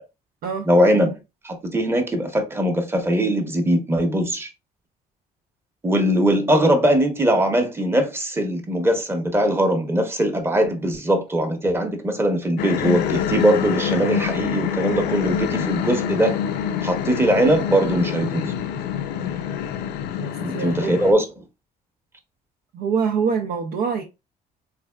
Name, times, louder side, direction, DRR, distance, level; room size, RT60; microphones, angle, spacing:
voice 1, 0.6-1.2 1.4-4.5 5.8-16.4 16.8-18.5 20.4-21.3, right 1 dB, 15° right, 0.8 m, -21 dB
sound 1, 12.6-21.1, left 8 dB, 75° left, 0.5 m, -26 dB
voice 2, 20.2-21.0 22.7-24.0, right 6 dB, 70° right, 0.6 m, -25 dB
3.4 x 3.3 x 2.2 m
cardioid pair, 110°, 17 cm